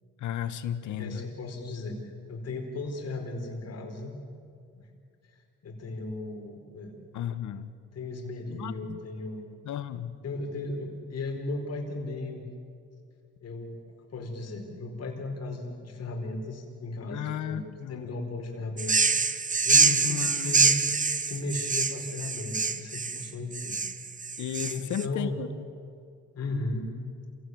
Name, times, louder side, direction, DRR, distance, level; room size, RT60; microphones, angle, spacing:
voice 1, 0.2-1.3 7.1-7.7 8.5-9.0 9.6-10.2 17.1-18.2 19.7-20.6 24.4-25.6, left 10 dB, 75° left, 13 dB, 1.4 m, -34 dB
voice 2, 0.8-4.1 4.7-4.8 5.6-6.9 7.9-9.5 10.2-12.4 13.4-13.8 14.1-17.6 17.9-20.8 21.2-23.8 24.7-25.4 26.3-26.9, left 2 dB, 55° left, 2 dB, 4.6 m, -36 dB
sound 1, 18.8-25.0, right 5 dB, 25° right, 1.1 m, -25 dB
27.0 x 17.0 x 9.5 m, 2.3 s
cardioid pair, 90°, 30 cm